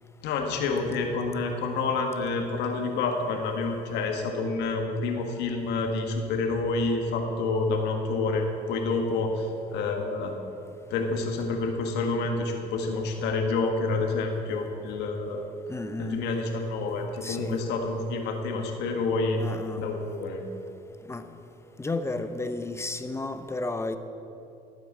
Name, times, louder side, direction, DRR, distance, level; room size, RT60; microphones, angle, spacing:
voice 1, 0.2-10.3 10.9-15.4 16.0-19.4 19.8-20.4, left 3 dB, 85° left, 3 dB, 1.6 m, -28 dB
voice 2, 15.7-16.3 17.2-17.7 19.4-19.9 21.1-21.3 21.8-24.0, left 2 dB, 15° left, 9 dB, 0.9 m, -32 dB
12.5 x 9.4 x 7.4 m, 2.8 s
cardioid pair, 110°, 17 cm